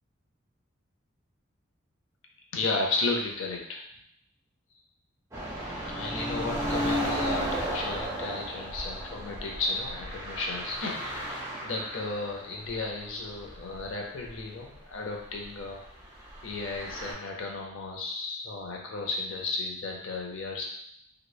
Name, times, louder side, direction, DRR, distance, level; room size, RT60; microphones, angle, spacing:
voice 1, 2.5-3.8 5.7-15.8 16.4-20.6, left 3 dB, 90° left, 0 dB, 0.5 m, -34 dB
sound 1, 5.3-12.4 12.7-12.8 13.4-13.9 14.3-14.4 16.3-17.1, equal, 15° right, 0.5 m, -34 dB
2.9 x 2.0 x 2.3 m, 0.69 s
head